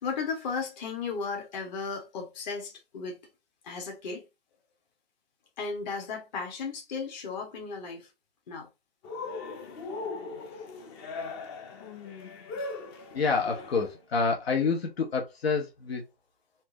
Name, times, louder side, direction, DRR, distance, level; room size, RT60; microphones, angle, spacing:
voice 1, 0.0-3.2 3.6-4.2 5.6-8.1 8.5-8.7, left 5 dB, 45° left, 1.6 m, -35 dB
Cheering, 9.0-14.0, left 4 dB, 25° left, 0.6 m, -39 dB
voice 2, 13.1-16.0, left 4 dB, 75° left, 1.2 m, -28 dB
4.4 x 2.8 x 2.9 m
hypercardioid pair, 145°, 31 cm